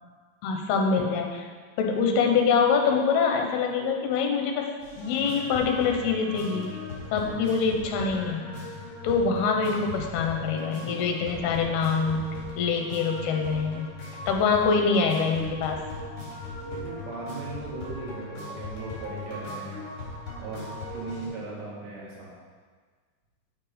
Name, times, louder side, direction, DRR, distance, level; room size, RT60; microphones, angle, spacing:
voice 1, 0.4-1.5 1.8-6.7 7.1-8.5 9.0-12.3 12.6-13.9 14.3-15.8, left 5 dB, 75° left, 2 dB, 2.8 m, -25 dB
sound 1, 4.8-21.3, left 2 dB, 40° left, 2.9 m, -39 dB
voice 2, 16.6-19.9 20.4-22.3, right 3 dB, 80° right, -5 dB, 3.8 m, -38 dB
8.3 x 6.6 x 5.1 m, 1.5 s
omnidirectional pair, 4.8 m